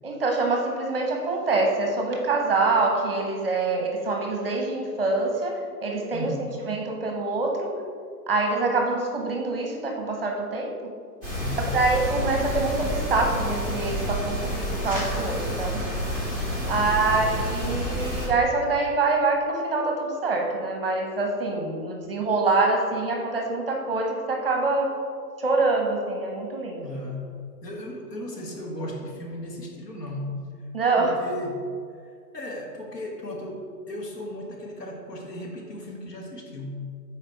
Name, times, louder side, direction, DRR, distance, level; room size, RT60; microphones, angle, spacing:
voice 1, 0.0-5.5 5.8-6.3 6.6-7.7 8.3-10.9 11.7-15.8 16.7-24.9 25.4-26.9 30.7-31.1, right 3 dB, 35° right, 1 dB, 0.7 m, -25 dB
voice 2, 6.1-6.5 11.3-11.7 16.7-17.2 26.8-27.3 27.6-30.3 30.9-36.8, equal, 70° left, 0 dB, 1.5 m, -36 dB
sound 1, 11.2-18.3, equal, 20° left, 1.4 m, -29 dB
6.5 x 4.3 x 4.5 m, 2.1 s
hypercardioid pair, 170°, 50 cm